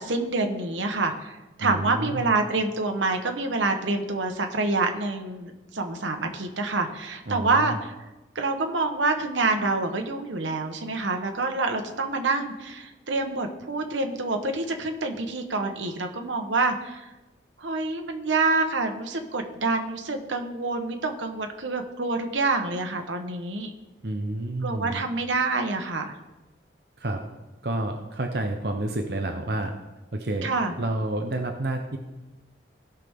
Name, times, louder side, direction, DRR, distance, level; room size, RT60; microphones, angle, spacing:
voice 1, 0.0-7.9 8.3-17.0 17.6-23.7 24.6-26.1 30.4-30.7, right 3 dB, 85° right, 4 dB, 1.2 m, -27 dB
voice 2, 1.6-2.3 7.3-7.7 24.0-25.0 27.0-27.2 27.6-29.7 30.1-30.5 30.8-32.0, right 2 dB, 55° right, 4 dB, 0.8 m, -29 dB
17.0 x 5.9 x 3.7 m, 1.1 s
head